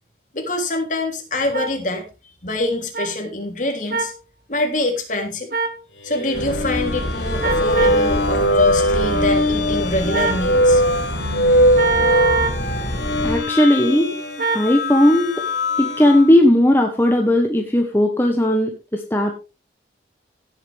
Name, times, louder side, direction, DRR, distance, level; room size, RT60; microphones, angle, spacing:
voice 1, 0.3-2.0 2.4-4.1 4.5-5.5 6.0-10.8, left 2 dB, 45° left, 3 dB, 3.3 m, -25 dB
sound 1, 1.5-1.7 2.9-3.1 3.9-4.2 5.5-5.8 7.4-8.0 10.1-10.4 11.8-12.6 14.4-14.7, right 4 dB, 50° right, 1.4 m, -22 dB
sound 2, 6.1-16.3, equal, 85° left, 3.8 m, -21 dB
sound 3, 6.3-13.4, left 1 dB, 60° left, 2.3 m, -27 dB
voice 2, 13.2-14.1 14.5-15.3 15.8-19.3, left 1 dB, 10° left, 3 dB, 1.3 m, -16 dB
17.0 x 8.0 x 3.5 m, 0.29 s
head